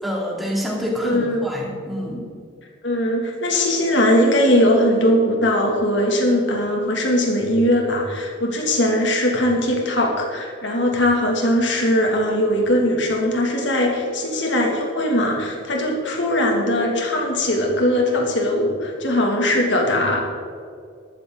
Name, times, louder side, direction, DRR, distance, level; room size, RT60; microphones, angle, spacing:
voice 1, 0.0-2.3, equal, ahead, -3 dB, 2.9 m, -27 dB
voice 2, 1.0-1.4 2.8-20.2, left 1 dB, 70° left, 1 dB, 2.6 m, -20 dB
13.5 x 13.0 x 4.0 m, 2.3 s
head